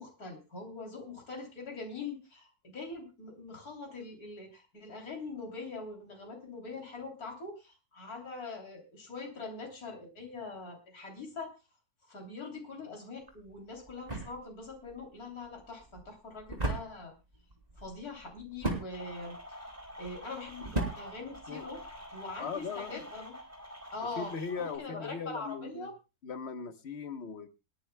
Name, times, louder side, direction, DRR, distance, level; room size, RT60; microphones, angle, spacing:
voice 1, 0.0-11.5 12.1-17.1 17.8-19.4 20.0-21.8 22.1-23.3 23.9-24.3 24.6-25.9, left 3 dB, 70° left, 3.7 m, -43 dB
sound 1, 13.2-22.1, right 2 dB, 25° right, 3.1 m, -39 dB
sound 2, 18.9-24.8, equal, 10° right, 4.5 m, -47 dB
voice 2, 22.4-23.0 24.2-25.9 26.2-27.5, left 5 dB, 50° left, 1.2 m, -39 dB
28.5 x 9.9 x 2.2 m
omnidirectional pair, 1.6 m